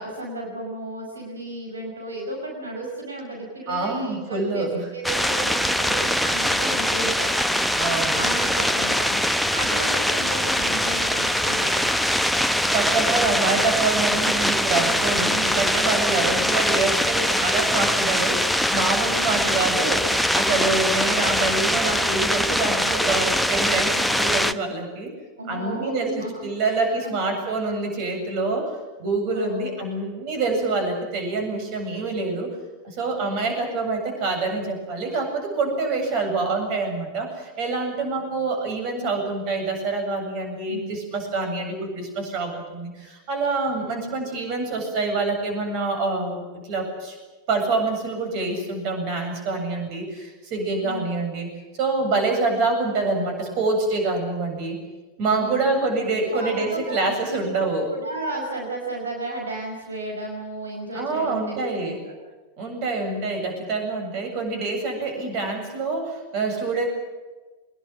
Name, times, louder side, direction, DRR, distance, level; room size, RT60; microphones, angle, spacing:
voice 1, 0.0-7.3 8.1-11.9 19.4-19.7 25.4-27.2 29.3-29.8 40.7-41.0 50.8-51.1 55.3-55.7 56.2-62.1, right 2 dB, 75° right, 0 dB, 5.6 m, -34 dB
voice 2, 3.7-4.9 7.8-8.2 12.7-25.1 25.5-32.5 32.8-47.2 47.5-54.8 55.2-57.9 60.9-62.0 62.6-66.9, right 3 dB, 45° right, 4 dB, 7.9 m, -26 dB
sound 1, 5.0-24.5, equal, ahead, 0.9 m, -22 dB
24.5 x 21.5 x 7.7 m, 1.2 s
figure-of-eight pair, 90°, 0 cm